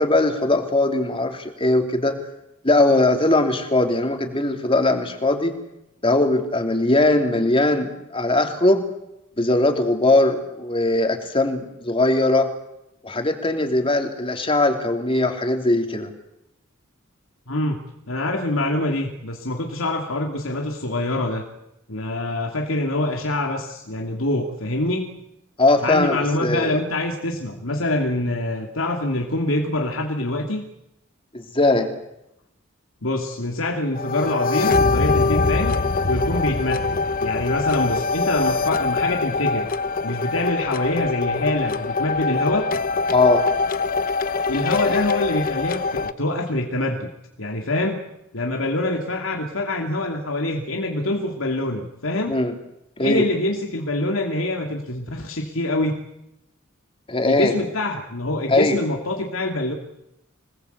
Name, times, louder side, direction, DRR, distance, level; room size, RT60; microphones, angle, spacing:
voice 1, 0.0-2.2 2.6-5.5 6.0-8.8 9.4-12.5 13.0-16.1 25.6-26.2 26.4-26.8 31.3-31.9 43.1-43.4 44.8-44.9 52.3-52.5 53.0-53.3 57.1-57.5 58.5-58.8, left 2 dB, 25° left, 5 dB, 3.3 m, -20 dB
voice 2, 17.5-21.4 21.9-25.1 25.8-30.6 33.0-35.7 36.1-39.7 40.0-42.7 44.5-47.1 47.4-48.0 48.3-52.4 53.0-56.0 57.2-59.7, left 1 dB, 85° left, 2 dB, 2.8 m, -25 dB
sound 1, 33.9-46.1, left 4 dB, 45° left, 1.0 m, -23 dB
27.0 x 19.5 x 8.2 m, 0.84 s
head